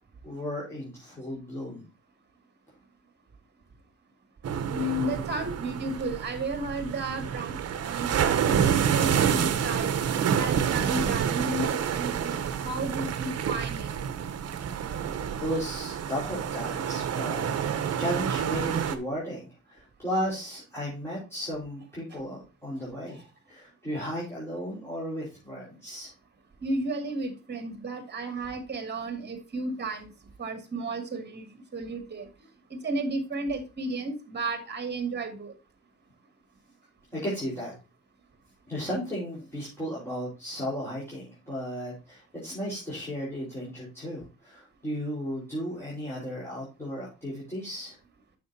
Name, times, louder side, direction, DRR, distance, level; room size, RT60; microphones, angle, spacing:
voice 1, 0.2-1.9 15.4-26.1 37.1-37.7 38.7-47.9, equal, 10° left, -7 dB, 4.4 m, -35 dB
sound 1, 4.4-19.0, right 8 dB, 55° right, 0.9 m, -28 dB
voice 2, 4.7-10.0 10.4-13.9 26.6-30.1 30.4-31.5 31.7-32.3 32.7-35.5, right 2 dB, 35° right, 8 dB, 2.2 m, -33 dB
9.2 x 6.6 x 2.7 m, 0.31 s
cardioid pair, 90°, 30 cm